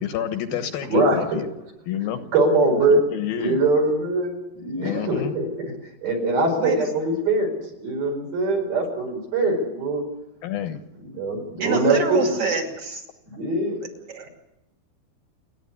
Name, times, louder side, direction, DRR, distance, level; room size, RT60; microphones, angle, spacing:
voice 1, 0.0-1.5 1.9-2.2 2.7-3.6 4.7-5.3 10.4-10.8, left 10 dB, 70° left, 8 dB, 2.8 m, -29 dB
voice 2, 0.9-1.2 2.3-3.0 3.3-5.5 6.0-7.5 7.8-10.0 11.1-12.2 13.3-13.8, right 2 dB, 65° right, 2 dB, 6.7 m, -22 dB
voice 3, 6.6-6.9 11.6-13.0 13.8-14.3, right 5 dB, 40° right, 3 dB, 3.1 m, -27 dB
30.0 x 10.0 x 9.9 m, 0.90 s
omnidirectional pair, 4.7 m